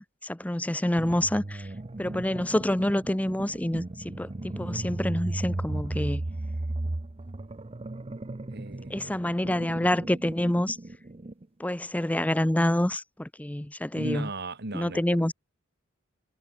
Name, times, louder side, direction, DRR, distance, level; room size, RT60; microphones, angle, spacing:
voice 1, 0.0-1.7 2.0-6.2 8.9-10.8 11.6-14.3 14.7-15.3, left 1 dB, 5° left, 0.6 m, -27 dB
sound 1, 1.0-11.5, right 2 dB, 30° right, 0.7 m, -35 dB
voice 2, 8.5-9.3 13.9-15.3, right 2 dB, 55° right, 2.7 m, -37 dB
head